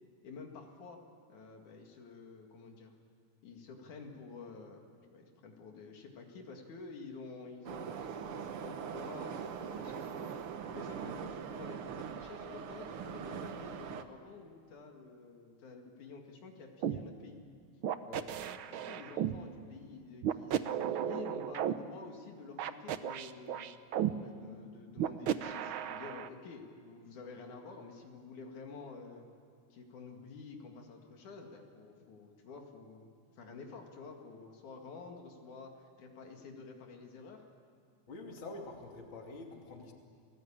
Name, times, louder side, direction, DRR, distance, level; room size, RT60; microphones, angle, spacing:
voice 1, 0.2-1.0 1.3-2.9 3.4-10.3 10.7-17.4 18.7-23.8 24.2-29.3 29.7-37.4 39.7-39.9, left 4 dB, 80° left, 2 dB, 3.6 m, -50 dB
Subway metro underground, 7.6-14.0, right 7 dB, 60° right, 1.6 m, -42 dB
sound 1, 16.8-17.0 17.8-19.4 20.2-21.7 22.6-24.1 25.0-26.3, right 10 dB, 85° right, 1.1 m, -34 dB
voice 2, 38.1-39.9, left 2 dB, 40° left, 1 dB, 3.3 m, -46 dB
29.5 x 20.0 x 8.8 m, 2.3 s
omnidirectional pair, 3.5 m